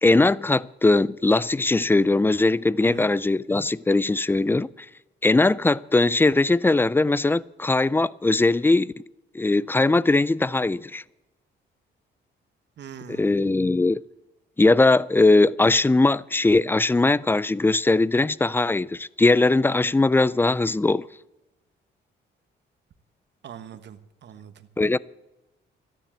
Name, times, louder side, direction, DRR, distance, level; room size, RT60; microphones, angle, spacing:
voice 1, 0.0-4.7 5.2-8.9 9.3-11.0 13.1-14.0 14.6-21.1 24.8-25.0, left 2 dB, 10° left, 0.4 m, -20 dB
voice 2, 12.8-13.3 23.4-24.7, right 8 dB, 60° right, 1.3 m, -42 dB
13.0 x 10.5 x 7.3 m
cardioid pair, 90°, 20 cm